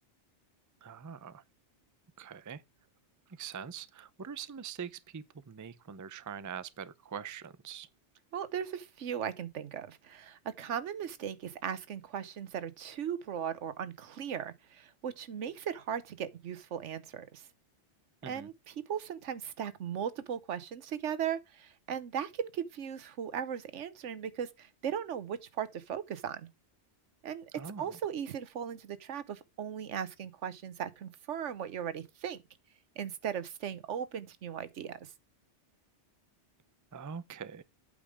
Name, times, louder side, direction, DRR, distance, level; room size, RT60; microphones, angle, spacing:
voice 1, 0.8-1.4 2.2-2.6 3.3-7.9 18.2-18.5 27.5-28.0 36.9-37.6, right 7 dB, 30° right, 0.3 m, -43 dB
voice 2, 8.3-17.5 18.3-26.5 27.2-27.5 27.8-32.4 33.0-35.1, right 8 dB, 90° right, 1.2 m, -38 dB
8.6 x 5.2 x 4.9 m
omnidirectional pair, 1.2 m